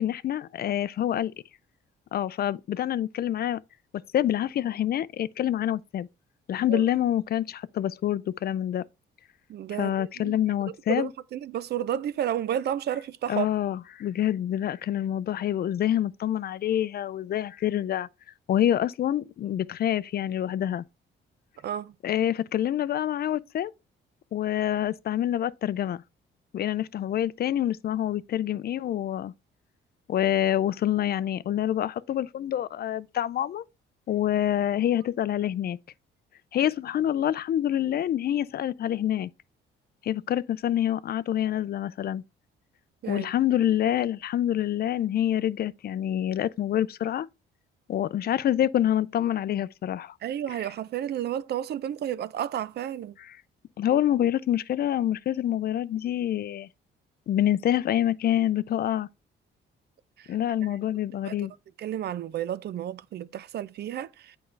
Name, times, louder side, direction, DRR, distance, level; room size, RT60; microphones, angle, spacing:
voice 1, 0.0-1.3 2.1-3.6 4.1-6.1 6.5-8.8 9.8-11.1 13.3-18.1 18.5-20.8 22.0-23.7 24.3-26.0 26.5-29.3 30.1-33.6 34.1-35.8 36.5-39.3 40.0-42.2 43.1-47.3 47.9-50.1 53.2-53.4 53.8-56.7 57.3-59.1 60.3-61.5, left 11 dB, 50° left, 0.4 m, -26 dB
voice 2, 9.5-10.4 10.9-13.5 21.6-21.9 43.0-43.3 50.2-53.1 60.2-60.7 61.2-61.4 61.8-64.4, right 10 dB, 55° right, 0.4 m, -32 dB
8.0 x 5.2 x 3.2 m
cardioid pair, 90°, 20 cm